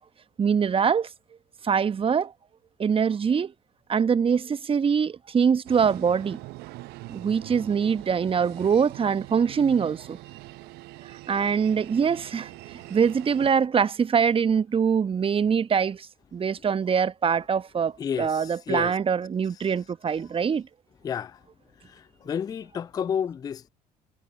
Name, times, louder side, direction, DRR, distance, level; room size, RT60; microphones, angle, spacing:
voice 1, 0.4-1.1 1.6-2.3 2.8-3.5 3.9-6.4 7.1-10.2 11.3-20.7, right 6 dB, 25° right, 1.2 m, -24 dB
sound 1, 5.7-13.5, right 21 dB, 55° right, 1.1 m, -43 dB
voice 2, 18.0-18.9 21.0-21.4 21.9-23.7, left 8 dB, 20° left, 0.3 m, -31 dB
figure-of-eight pair, 55°, 20 cm